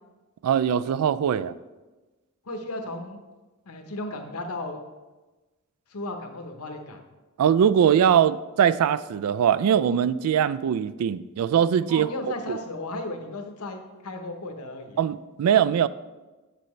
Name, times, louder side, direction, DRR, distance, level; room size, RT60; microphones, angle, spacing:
voice 1, 0.4-1.5 7.4-12.1 12.5-12.6 15.0-15.9, right 8 dB, 80° right, 17 dB, 0.3 m, -21 dB
voice 2, 2.4-3.2 3.6-4.8 5.9-7.0 11.9-15.0, left 2 dB, 80° left, 5 dB, 0.9 m, -35 dB
7.6 x 6.8 x 3.1 m, 1.2 s
head